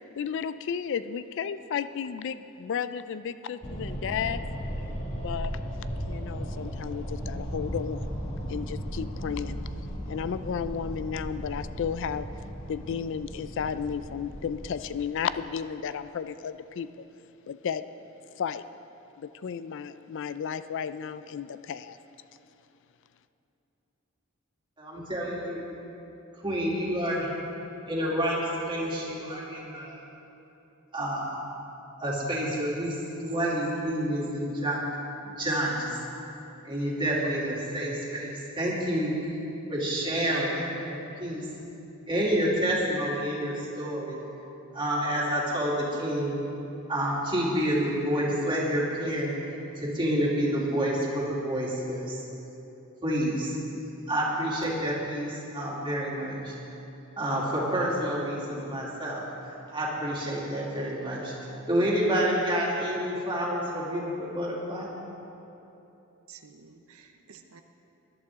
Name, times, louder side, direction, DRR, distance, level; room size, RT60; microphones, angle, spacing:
voice 1, 0.0-4.4 5.2-5.6 6.1-8.1 8.5-9.6 10.1-12.3 12.7-17.0 17.5-17.8 18.4-18.6 19.2-22.0, left 7 dB, 60° left, 12 dB, 0.4 m, -33 dB
sound 1, 3.6-15.0, equal, 30° left, 2.0 m, -36 dB
voice 2, 24.8-25.7 26.4-27.3 27.9-30.0 30.9-31.3 32.0-34.8 35.4-35.9 36.6-39.1 39.7-41.4 42.1-44.2 44.7-46.4 46.9-49.3 49.8-52.2 53.0-53.6 54.1-56.5 57.2-59.2 59.7-61.3 61.7-64.9, equal, 25° right, -5 dB, 2.5 m, -28 dB
voice 3, 66.3-67.6, right 6 dB, 75° right, 6 dB, 0.7 m, -51 dB
20.0 x 11.0 x 3.6 m, 3.0 s
head